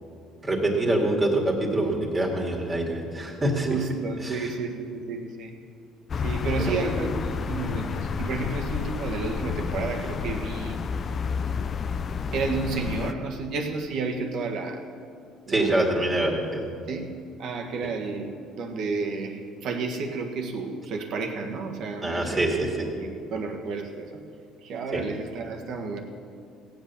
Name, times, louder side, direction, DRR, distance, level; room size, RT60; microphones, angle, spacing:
voice 1, 0.4-3.7 4.2-4.5 6.6-6.9 15.5-16.6 22.0-22.7 24.9-25.0, right 1 dB, 20° right, -1 dB, 2.2 m, -25 dB
voice 2, 3.5-5.5 6.2-10.8 12.3-14.8 15.5-15.8 16.9-22.5 22.8-24.2 24.6-26.0, right 4 dB, 60° right, 3 dB, 1.5 m, -31 dB
sound 1, 6.1-13.1, left 5 dB, 35° left, 0.5 m, -30 dB
17.0 x 7.9 x 6.9 m, 2.4 s
cardioid pair, 130°, 0 cm